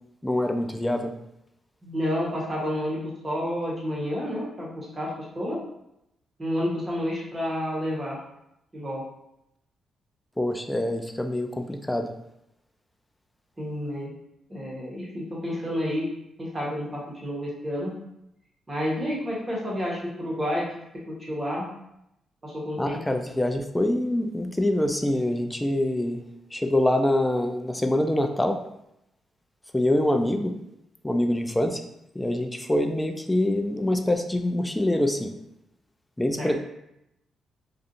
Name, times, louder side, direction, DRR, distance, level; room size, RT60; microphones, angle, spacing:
voice 1, 0.2-1.1 10.4-12.1 22.8-26.2 26.5-28.6 29.7-30.5 31.0-31.8 32.2-35.3 36.2-36.6, left 1 dB, 10° left, 6 dB, 0.3 m, -25 dB
voice 2, 1.8-5.6 6.4-8.2 8.7-9.0 13.6-14.1 14.5-16.1 16.4-17.9 18.7-20.7 21.1-21.7 22.4-23.0 36.4-36.5, equal, 30° right, -4 dB, 1.1 m, -30 dB
2.5 x 2.4 x 2.5 m, 0.82 s
supercardioid pair, 65°, 0 cm